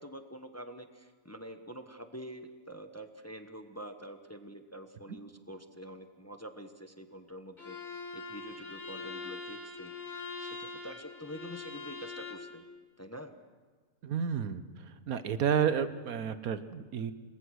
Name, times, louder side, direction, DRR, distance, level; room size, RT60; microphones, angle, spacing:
voice 1, 0.0-12.6 13.0-13.3, equal, 10° left, 7 dB, 1.0 m, -46 dB
Bowed string instrument, 7.6-12.5, left 4 dB, 30° left, 4.8 m, -43 dB
voice 2, 14.0-14.6 15.1-17.1, right 8 dB, 85° right, 12 dB, 1.4 m, -30 dB
26.5 x 20.0 x 6.4 m, 1.5 s
omnidirectional pair, 1.5 m